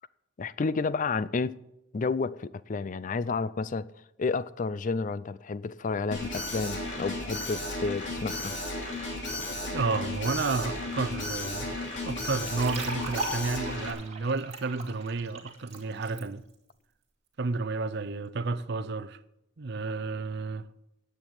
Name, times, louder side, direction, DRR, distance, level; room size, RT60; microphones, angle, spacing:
voice 1, 0.4-1.6 1.9-3.9 4.2-8.5, left 4 dB, 40° left, 0.4 m, -31 dB
Alarm, 6.1-13.9, left 2 dB, 60° left, 3.1 m, -34 dB
voice 2, 9.7-11.7 12.1-16.4 17.4-19.2 19.6-20.7, right 3 dB, 55° right, 0.6 m, -31 dB
sound 1, 12.4-16.2, right 3 dB, 35° right, 2.5 m, -38 dB
9.7 x 7.9 x 8.7 m
head